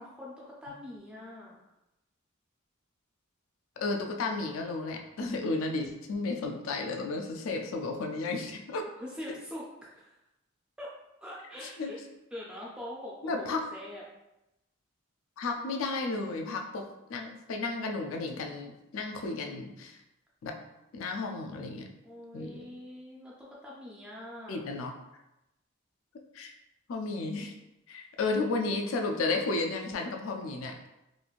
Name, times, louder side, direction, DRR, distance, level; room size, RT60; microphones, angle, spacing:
voice 1, 0.0-1.7 9.0-10.1 10.8-10.9 11.2-12.0 12.3-14.0 19.0-19.8 22.0-24.6, left 1 dB, 5° right, -5 dB, 0.4 m, -44 dB
voice 2, 3.8-8.9 11.6-11.9 13.2-13.6 15.4-20.0 20.4-20.6 20.9-21.9 22.3-22.7 24.5-24.9 26.3-26.5 26.9-27.5 27.9-30.7, left 3 dB, 75° left, 3 dB, 0.4 m, -33 dB
3.0 x 2.5 x 2.4 m, 0.92 s
head